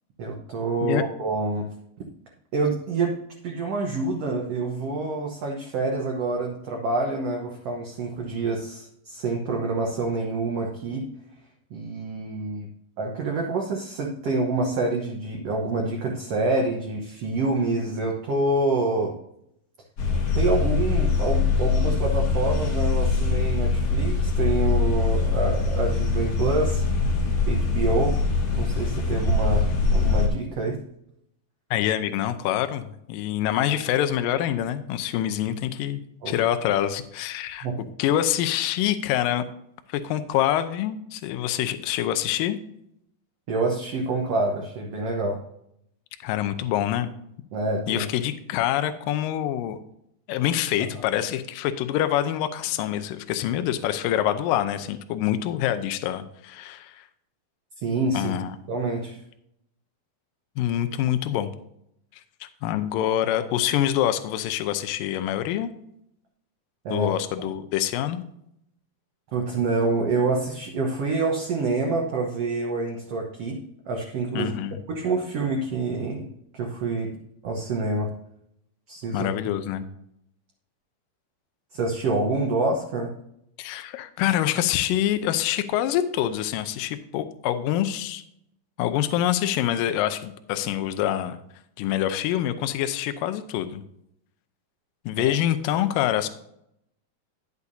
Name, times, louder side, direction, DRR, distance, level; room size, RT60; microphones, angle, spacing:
voice 1, 0.2-1.7 2.5-3.1 3.4-11.1 11.7-12.7 13.0-19.1 20.3-26.8 27.5-28.1 28.5-29.6 29.9-30.8 36.2-36.3 37.6-37.7 43.5-45.4 47.5-48.0 57.8-58.3 58.7-59.2 66.8-67.1 69.3-73.6 73.9-74.5 74.9-76.3 76.5-77.1 77.4-78.1 78.9-79.3 81.7-83.1, right 3 dB, 65° right, 0 dB, 1.5 m, -27 dB
sound 1, 20.0-30.3, left 4 dB, 50° left, 1.6 m, -23 dB
voice 2, 31.7-36.0 36.3-37.7 38.0-39.5 39.9-42.6 46.2-47.1 47.9-49.8 50.3-57.1 58.1-58.5 60.6-61.5 62.4-65.7 66.9-68.2 74.4-74.8 79.1-79.8 83.6-88.2 88.8-91.4 91.8-93.8 95.1-96.3, left 11 dB, 80° left, 10 dB, 2.2 m, -25 dB
11.0 x 8.1 x 2.7 m, 0.76 s
omnidirectional pair, 4.3 m